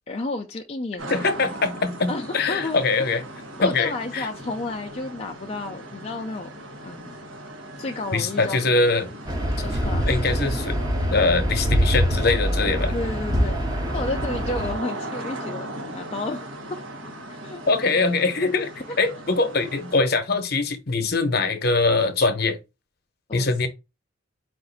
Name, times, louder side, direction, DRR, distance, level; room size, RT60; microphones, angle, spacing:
voice 1, 0.1-1.3 2.1-3.1 3.6-6.5 6.8-7.2 7.8-8.8 9.6-10.2 12.9-15.7 15.9-16.5 17.3-17.6 18.9-19.0 23.3-23.5, left 2 dB, 30° left, 0.4 m, -32 dB
sound 1, 1.0-20.0, right 1 dB, 90° right, 1.3 m, -38 dB
voice 2, 1.1-3.2 3.6-4.3 8.1-9.1 10.1-10.8 11.1-12.9 17.7-18.7 19.0-22.6 23.3-23.7, left 3 dB, 50° left, 0.8 m, -22 dB
sound 2, 9.3-14.7, equal, 20° right, 0.7 m, -24 dB
4.9 x 2.6 x 3.9 m
head